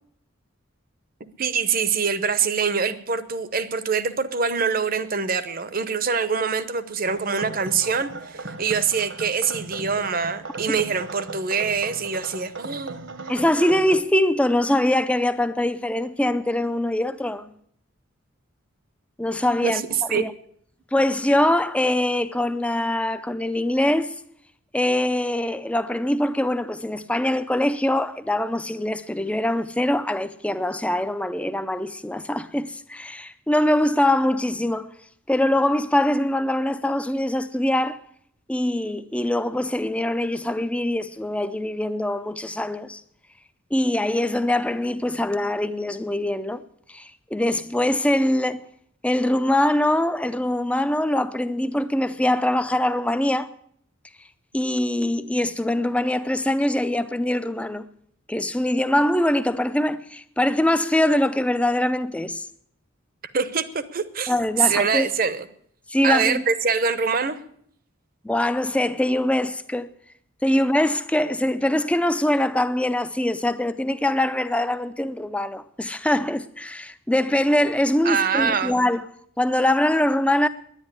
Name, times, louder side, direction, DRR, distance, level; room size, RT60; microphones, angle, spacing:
voice 1, 1.4-13.4 19.6-19.8 20.1-20.2 63.3-64.3 64.6-65.5 66.0-67.4 78.0-78.7, right 5 dB, 45° right, 0.8 m, -24 dB
sound 1, 7.1-14.0, right 3 dB, 60° right, 1.1 m, -37 dB
voice 2, 13.3-17.5 19.2-19.8 20.1-20.3 20.9-24.1 24.7-34.9 35.3-38.0 38.5-43.0 43.7-46.6 46.9-48.6 49.0-53.5 54.5-57.9 58.3-62.5 64.3-65.1 65.9-66.4 68.2-69.9 70.4-79.0 79.4-80.5, left 1 dB, 5° left, 0.5 m, -23 dB
10.5 x 9.9 x 9.8 m
head